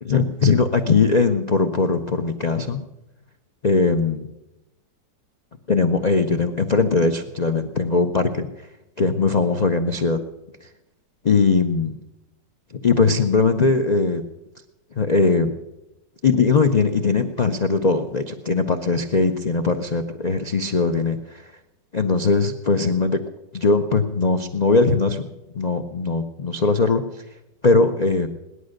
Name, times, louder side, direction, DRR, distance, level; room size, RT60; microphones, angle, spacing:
voice 1, 0.0-2.8 3.6-4.2 5.7-8.7 9.0-10.2 10.6-10.7 11.2-12.0 12.8-14.2 14.9-15.5 16.2-21.5 21.9-23.2 23.5-25.3 25.5-27.0 27.6-28.3, left 4 dB, 85° left, 6 dB, 0.3 m, -20 dB
18.0 x 11.5 x 6.5 m, 0.97 s
omnidirectional pair, 1.9 m